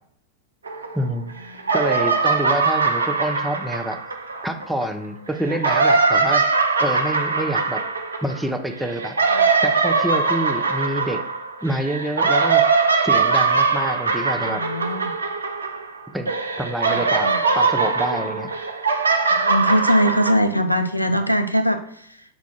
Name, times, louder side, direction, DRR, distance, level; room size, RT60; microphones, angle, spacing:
sound 1, 0.7-1.3 1.6-4.9 5.4-16.0 16.3-20.3, right 4 dB, 75° right, 0.4 m, -21 dB
voice 1, 0.9-1.3 1.7-4.0 4.4-6.4 6.8-7.8 8.2-9.1 9.6-11.2 11.6-14.6 16.1-18.5, right 1 dB, 5° right, 6 dB, 0.4 m, -27 dB
voice 2, 14.4-15.1 16.9-17.4 19.3-22.1, equal, 90° left, 8 dB, 0.4 m, -22 dB
5.5 x 2.4 x 3.8 m, 0.67 s
figure-of-eight pair, 90°, 0 cm